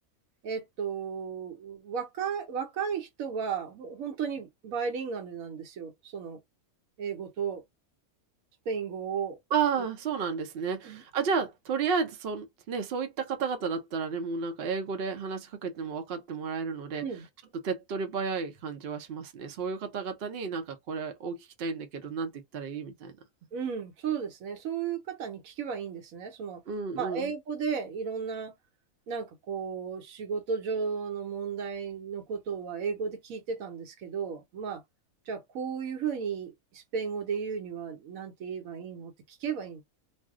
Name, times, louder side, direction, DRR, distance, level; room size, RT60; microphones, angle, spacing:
voice 1, 0.4-6.4 7.0-7.6 8.7-9.4 10.8-11.0 17.0-17.3 23.5-26.6 26.9-28.5 29.1-34.8 35.3-39.8, right 6 dB, 75° right, 1.1 m, -34 dB
voice 2, 9.5-17.0 17.5-23.1 26.7-27.3, right 5 dB, 55° right, 0.7 m, -32 dB
2.6 x 2.0 x 3.5 m
omnidirectional pair, 1.5 m